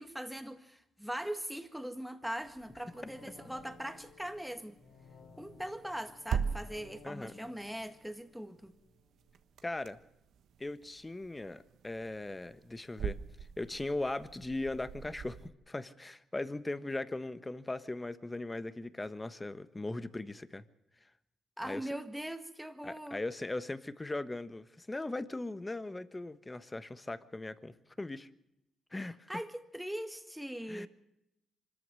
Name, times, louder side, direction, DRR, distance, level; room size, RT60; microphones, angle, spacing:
voice 1, 0.0-4.8 5.4-8.8 21.6-23.2 29.0-30.9, equal, ahead, 1.9 m, -41 dB
sound 1, 2.4-15.5, right 7 dB, 70° right, 1.3 m, -43 dB
sound 2, 2.5-9.4 9.7-9.8, left 3 dB, 85° left, 4.5 m, -58 dB
voice 2, 7.0-7.5 9.6-10.0 10.6-13.2 13.6-20.6 21.6-21.9 22.8-28.3 28.9-29.3 30.7-30.9, left 2 dB, 15° left, 1.3 m, -39 dB
25.0 x 14.0 x 7.7 m
cardioid pair, 90°, 0 cm